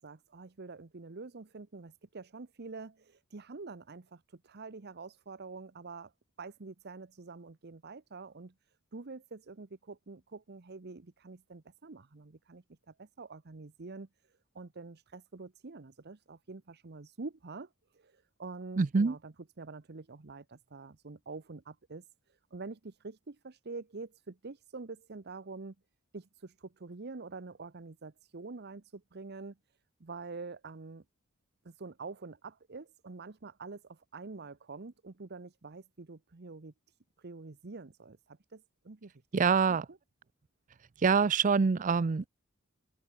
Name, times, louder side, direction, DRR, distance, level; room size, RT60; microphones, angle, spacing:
voice 1, 0.0-6.1 6.4-8.5 8.9-14.1 14.5-25.7 26.1-29.6 30.0-31.0 31.6-39.1, right 3 dB, 55° right, 0.9 m, -46 dB
voice 2, 18.8-19.2 39.3-39.9 41.0-42.3, right 5 dB, 40° right, 0.5 m, -25 dB
open air
head